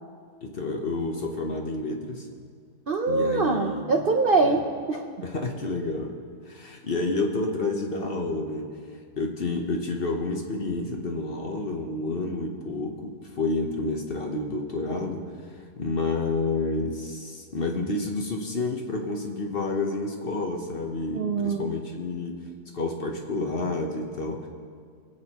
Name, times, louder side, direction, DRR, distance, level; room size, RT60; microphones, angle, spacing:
voice 1, 0.4-2.3 3.1-3.9 4.4-4.6 5.2-6.2 6.5-8.7 9.2-22.5 22.7-24.5, left 3 dB, 45° left, 2 dB, 1.0 m, -29 dB
voice 2, 2.9-5.1 21.1-21.7, right 3 dB, 55° right, 3 dB, 0.6 m, -24 dB
24.0 x 8.4 x 3.0 m, 2.1 s
omnidirectional pair, 1.6 m